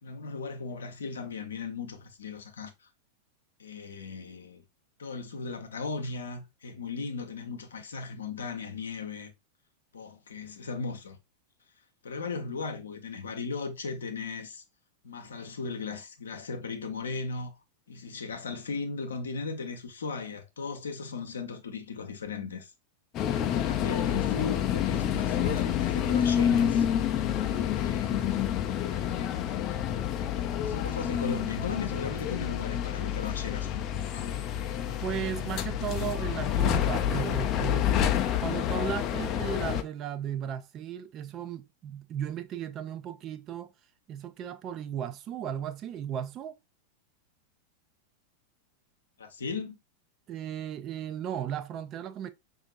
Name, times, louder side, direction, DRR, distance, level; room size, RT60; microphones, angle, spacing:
voice 1, 0.0-2.7 3.6-4.6 5.0-9.3 9.9-11.2 12.0-14.6 15.0-17.5 17.9-22.7 23.7-26.9 27.7-28.5 30.6-34.3 49.2-49.8, left 4 dB, 70° left, 0.7 m, -37 dB
sound 1, 23.1-39.8, left 10 dB, 35° left, 0.4 m, -28 dB
voice 2, 35.0-43.7 44.1-46.5 50.3-52.3, right 9 dB, 35° right, 0.4 m, -36 dB
5.1 x 2.5 x 2.4 m
figure-of-eight pair, 90°, 0 cm